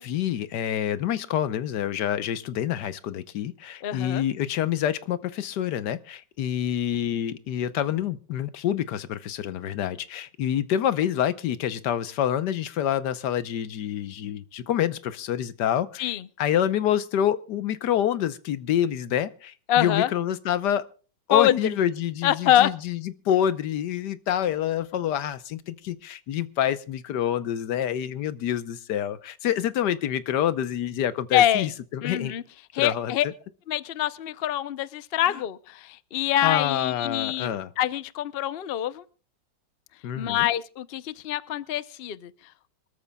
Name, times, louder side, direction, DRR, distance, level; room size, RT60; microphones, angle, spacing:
voice 1, 0.0-20.8 21.3-23.0 23.2-32.3 32.8-33.1 36.4-37.7 40.0-40.5, left 10 dB, 70° left, 1.4 m, -27 dB
voice 2, 3.8-4.2 16.0-16.3 19.7-20.1 21.3-21.6 22.2-22.7 31.3-31.7 32.0-32.4 32.7-33.3 33.7-39.0 40.2-42.3, left 12 dB, 85° left, 0.5 m, -25 dB
25.5 x 13.5 x 2.3 m
omnidirectional pair, 2.0 m